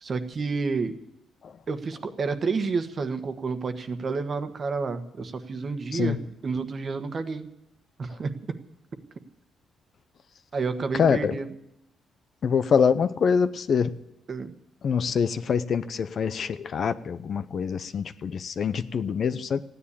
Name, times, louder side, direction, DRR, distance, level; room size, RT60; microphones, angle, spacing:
voice 1, 0.0-0.9 1.7-7.5 8.0-8.3 10.5-11.5 14.3-14.5, right 4 dB, 40° right, 8 dB, 1.4 m, -30 dB
voice 2, 10.9-11.4 12.4-13.9 14.8-19.6, left 6 dB, 50° left, 13 dB, 0.7 m, -25 dB
15.5 x 10.0 x 8.5 m, 0.82 s
cardioid pair, 120°, 0 cm